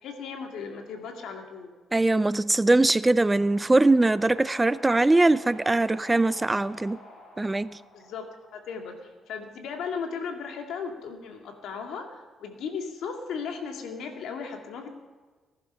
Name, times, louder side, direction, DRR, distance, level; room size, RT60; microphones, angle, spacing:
voice 1, 0.0-1.7 7.9-8.3 8.5-14.9, left 5 dB, 80° left, 2.2 m, -36 dB
voice 2, 1.9-7.0 7.4-7.8, right 2 dB, 15° right, 0.4 m, -21 dB
sound 1, 3.0-9.1, left 2 dB, 60° left, 5.0 m, -49 dB
18.0 x 11.0 x 5.7 m
cardioid pair, 90°, 0 cm